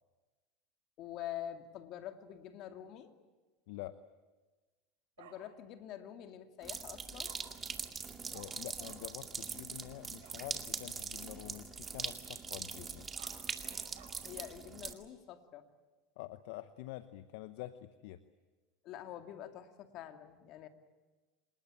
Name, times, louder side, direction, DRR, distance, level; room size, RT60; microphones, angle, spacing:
voice 1, 1.0-3.1 5.2-7.4 14.2-15.7 18.8-20.7, left 11 dB, 55° left, 6 dB, 2.3 m, -46 dB
voice 2, 3.7-4.0 8.3-13.1 16.2-18.2, left 16 dB, 70° left, 12 dB, 0.9 m, -47 dB
Bark, 5.2-5.3 7.2-7.4 8.3-8.5 8.8-9.0 10.2-10.4 12.9-14.1, right 10 dB, 80° right, 5.4 m, -55 dB
sound 1, 6.6-14.9, right 5 dB, 25° right, 2.2 m, -42 dB
26.5 x 20.0 x 8.9 m, 1.2 s
hypercardioid pair, 90°, 0 cm